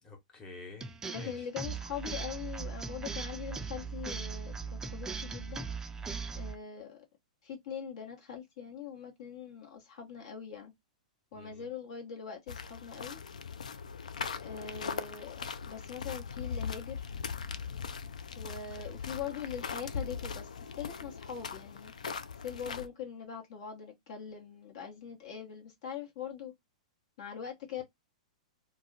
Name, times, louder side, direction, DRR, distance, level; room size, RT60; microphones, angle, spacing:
voice 1, 0.0-1.4 11.3-11.6 18.7-19.0, left 2 dB, 20° left, 1.0 m, -49 dB
sound 1, 0.8-6.5, right 5 dB, 15° right, 0.3 m, -39 dB
voice 2, 1.1-5.7 6.3-7.1 7.4-10.7 11.3-13.2 14.4-17.1 18.3-21.9 22.4-26.5 27.2-27.8, left 7 dB, 60° left, 0.9 m, -42 dB
sound 2, 12.5-22.9, left 6 dB, 80° left, 0.3 m, -40 dB
2.3 x 2.0 x 3.7 m
hypercardioid pair, 110°, 4 cm